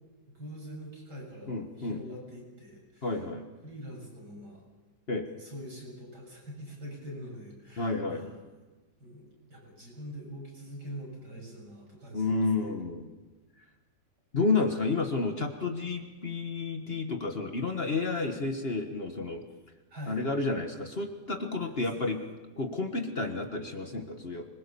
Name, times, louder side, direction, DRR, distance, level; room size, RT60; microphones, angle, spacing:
voice 1, 0.3-3.2 3.6-4.6 5.4-8.4 9.0-12.7 19.9-20.2 21.7-22.1, equal, 75° right, -1 dB, 7.9 m, -44 dB
voice 2, 1.5-2.0 3.0-3.5 5.1-5.3 7.8-8.2 12.1-13.1 14.3-19.4 20.1-22.2 22.6-24.5, left 3 dB, 35° left, 5 dB, 1.6 m, -31 dB
25.0 x 21.5 x 7.0 m, 1.2 s
omnidirectional pair, 1.8 m